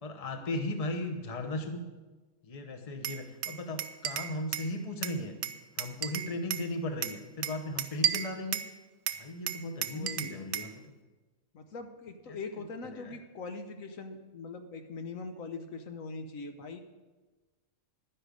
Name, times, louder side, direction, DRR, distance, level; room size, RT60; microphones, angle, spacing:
voice 1, 0.0-1.8 2.4-5.3 5.8-8.6 9.2-10.7 12.3-12.4 12.9-13.2, left 1 dB, 30° left, 5 dB, 0.9 m, -36 dB
Glass, 3.0-4.7 5.0-6.7 7.0-8.7 9.1-10.7, right 9 dB, 65° right, 0.5 m, -34 dB
voice 2, 9.6-10.4 11.5-16.8, left 3 dB, 75° left, 7 dB, 1.2 m, -42 dB
11.5 x 10.0 x 5.2 m, 1.2 s
omnidirectional pair, 1.5 m